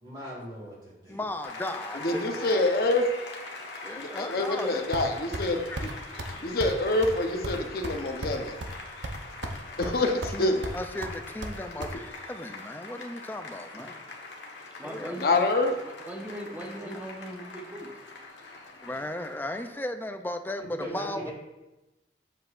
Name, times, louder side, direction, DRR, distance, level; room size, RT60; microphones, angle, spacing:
voice 1, 0.0-1.2 20.8-21.3, equal, 25° right, -7 dB, 2.0 m, -38 dB
voice 2, 1.1-2.5 3.8-4.9 5.7-5.8 6.1-6.2 9.8-13.9 14.8-15.2 16.8-16.9 18.8-21.3, left 1 dB, 10° left, 7 dB, 0.4 m, -36 dB
Applause, 1.4-19.7, left 3 dB, 90° left, 1.2 m, -42 dB
voice 3, 1.9-3.1 4.0-5.9 6.4-8.6 9.8-10.7 15.1-15.7, left 2 dB, 55° left, 3 dB, 0.8 m, -26 dB
sound 1, 4.9-5.5 5.8-5.9 6.2-6.3 6.6-6.8 7.0-7.2 7.4-8.8 9.0-9.6 9.8-10.4 10.6-11.9, right 1 dB, 75° right, 0.7 m, -35 dB
voice 4, 14.8-15.3 16.1-17.9, right 1 dB, 10° right, 1 dB, 0.9 m, -39 dB
7.7 x 7.6 x 2.5 m, 1.1 s
head